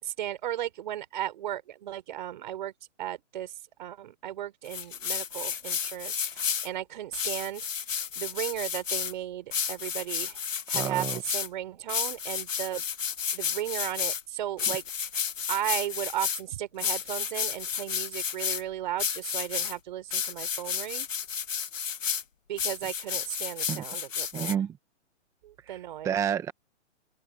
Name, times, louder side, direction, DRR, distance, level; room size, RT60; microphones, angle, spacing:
voice 1, 0.0-2.7 3.0-3.5 3.8-7.7 8.2-10.4 10.7-12.8 13.3-14.8 15.5-21.1 22.5-24.6 25.4-26.2, right 12 dB, 40° right, 4.6 m, -35 dB
sound 1, 4.7-6.7 7.1-9.1 9.5-11.5 11.9-14.2 14.6-16.4 16.8-18.6 19.0-19.7 20.1-22.2 22.6-24.5, left 7 dB, 85° left, 2.3 m, -31 dB
voice 2, 10.7-11.2 23.7-23.8 24.3-24.8 25.7-25.8 26.0-26.5, right 9 dB, 10° right, 1.4 m, -29 dB
open air
hypercardioid pair, 165°, 38 cm